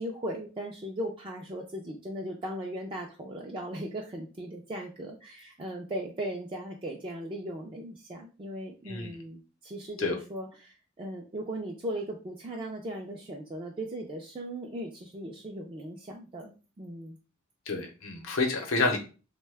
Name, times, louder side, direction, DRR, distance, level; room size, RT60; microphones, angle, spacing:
voice 1, 0.0-17.2, right 1 dB, 25° right, -1 dB, 0.4 m, -38 dB
voice 2, 8.9-9.2 10.0-10.2 17.7-19.0, left 3 dB, 80° left, 3 dB, 0.8 m, -29 dB
3.1 x 2.2 x 3.4 m, 0.34 s
head